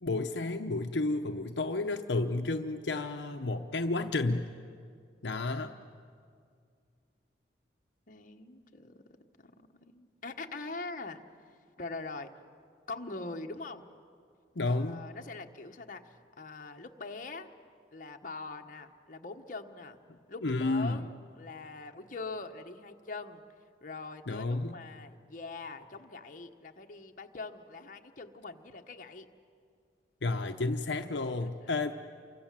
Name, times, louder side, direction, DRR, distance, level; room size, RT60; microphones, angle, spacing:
voice 1, 0.0-4.5 5.2-5.7 14.6-15.0 20.4-21.0 24.3-24.8 30.2-31.9, left 2 dB, 75° left, 5 dB, 0.8 m, -31 dB
voice 2, 8.1-9.0 9.4-9.5 9.8-11.2 11.8-12.3 12.9-13.9 14.7-17.5 17.9-20.0 20.3-23.4 23.8-29.3, left 3 dB, 45° left, 4 dB, 1.3 m, -43 dB
29.0 x 24.5 x 7.6 m, 2.3 s
head